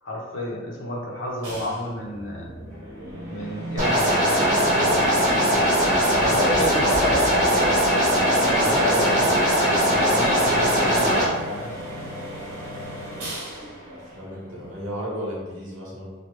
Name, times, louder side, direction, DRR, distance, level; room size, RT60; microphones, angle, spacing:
voice 1, 0.0-2.5 3.3-5.6 6.2-6.9 8.4-11.7, left 1 dB, 65° left, -3 dB, 0.7 m, -31 dB
sound 1, 1.4-14.9, equal, 90° right, 1.0 m, -35 dB
sound 2, 3.8-11.2, equal, 35° right, 0.7 m, -20 dB
sound 3, 5.9-9.3, equal, 15° left, 1.0 m, -37 dB
voice 2, 6.6-7.8 8.6-9.4 13.9-16.1, equal, 65° right, -6 dB, 1.2 m, -32 dB
3.1 x 2.3 x 3.0 m, 1.2 s
head